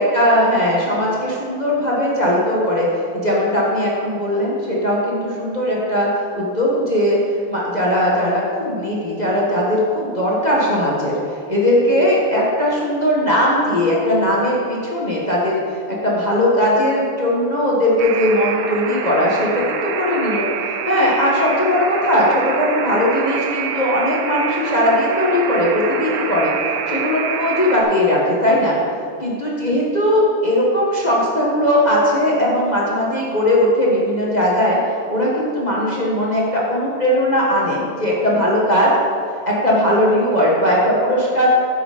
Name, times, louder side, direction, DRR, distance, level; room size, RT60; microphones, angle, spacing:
voice 1, 0.0-2.9 3.1-6.1 6.3-7.2 7.5-11.1 11.5-15.6 15.9-26.5 26.9-28.8 29.2-34.8 35.1-38.9 39.5-41.5, left 1 dB, 30° left, -5 dB, 0.9 m, -18 dB
Alarm, 18.0-27.8, right 6 dB, 80° right, 0.8 m, -26 dB
8.6 x 6.7 x 4.9 m, 2.4 s
omnidirectional pair, 2.4 m